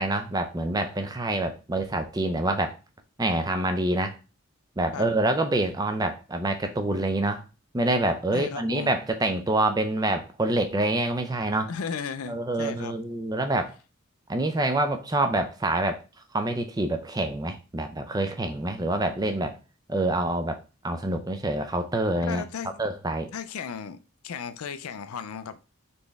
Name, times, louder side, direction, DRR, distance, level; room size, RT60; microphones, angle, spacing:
voice 1, 0.0-2.8 3.2-4.2 4.8-7.4 7.7-11.7 12.3-13.7 14.3-16.0 16.3-19.6 19.9-20.6 20.8-22.4 22.8-23.3, right 2 dB, 15° right, 7 dB, 0.4 m, -26 dB
voice 2, 8.3-9.0 11.7-12.9 22.2-22.8 23.3-24.0 24.2-25.6, left 6 dB, 85° left, 11 dB, 0.5 m, -35 dB
4.2 x 3.2 x 3.4 m, 0.31 s
head